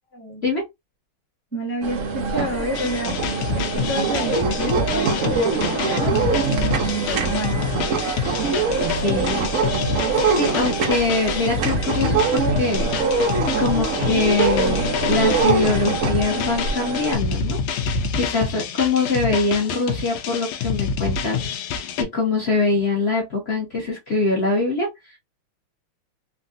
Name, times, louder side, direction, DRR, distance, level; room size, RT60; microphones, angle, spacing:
voice 1, 0.1-0.4 1.5-3.1 3.5-7.6, right 1 dB, 10° left, 1.0 m, -29 dB
sound 1, 1.8-17.1, right 4 dB, 80° right, 0.7 m, -23 dB
sound 2, 2.7-22.0, left 5 dB, 80° left, 1.4 m, -27 dB
voice 2, 9.0-9.5 10.3-12.9 13.6-17.6 18.1-21.4 22.0-25.2, left 3 dB, 50° left, 0.8 m, -23 dB
3.6 x 2.3 x 2.4 m
omnidirectional pair, 2.3 m